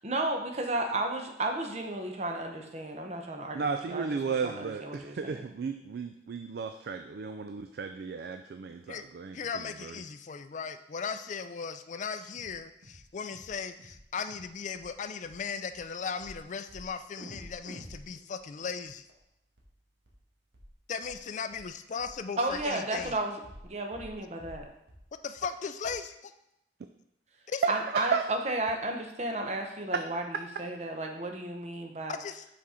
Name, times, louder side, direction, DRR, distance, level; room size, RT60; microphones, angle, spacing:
voice 1, 0.0-5.4 22.4-24.6 27.7-30.2 30.6-32.2, right 2 dB, 40° right, 3 dB, 0.8 m, -33 dB
voice 2, 3.5-9.9 27.6-28.2, right 5 dB, 60° right, 7 dB, 0.4 m, -34 dB
voice 3, 9.3-19.1 20.9-23.1 25.2-26.3 27.5-27.6 32.1-32.4, left 6 dB, 45° left, 10 dB, 0.4 m, -37 dB
sound 1, 12.3-12.6 12.8-13.0 13.3-13.5 13.8-14.0 14.3-14.5 14.7-14.9 15.2-15.4 15.7-15.8 16.2-16.4 16.7-16.9 17.2-19.2 19.6-19.7 20.1-20.2 20.5-20.7 21.0-21.2 21.5-21.7 22.0-22.2 22.5-22.7 23.0-23.1 23.4-23.7 23.9-24.1 24.4-24.6 24.9-25.0 25.4-25.5 25.8-25.9, equal, 90° right, 1.5 m, -49 dB
5.9 x 4.3 x 4.9 m, 0.83 s
head